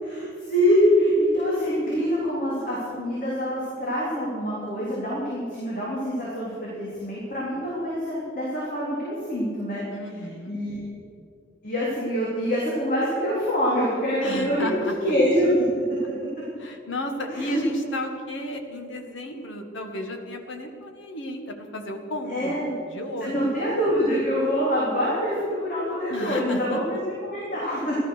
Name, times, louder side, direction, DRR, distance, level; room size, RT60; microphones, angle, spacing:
voice 1, 0.0-9.8 10.1-10.9 11.6-15.7 17.3-17.6 22.3-22.8 23.2-28.0, equal, 45° left, -7 dB, 3.7 m, -25 dB
voice 2, 9.9-10.7 14.2-14.9 16.6-22.6 22.9-23.5 26.1-26.8, equal, 90° left, 4 dB, 1.6 m, -33 dB
15.5 x 12.5 x 6.6 m, 2.3 s
head